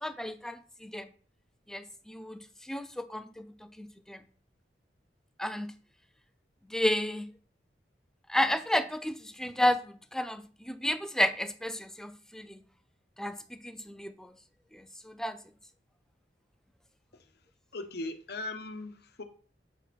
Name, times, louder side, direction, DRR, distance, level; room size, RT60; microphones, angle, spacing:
voice 1, 0.0-1.1 1.7-2.4 2.7-3.5 3.8-4.2 5.4-5.7 6.7-7.3 8.3-12.6 13.2-13.4 13.6-14.3 14.7-15.4, left 1 dB, 5° left, 0.6 m, -32 dB
voice 2, 17.7-19.2, left 2 dB, 65° left, 1.0 m, -39 dB
8.2 x 6.4 x 4.2 m
head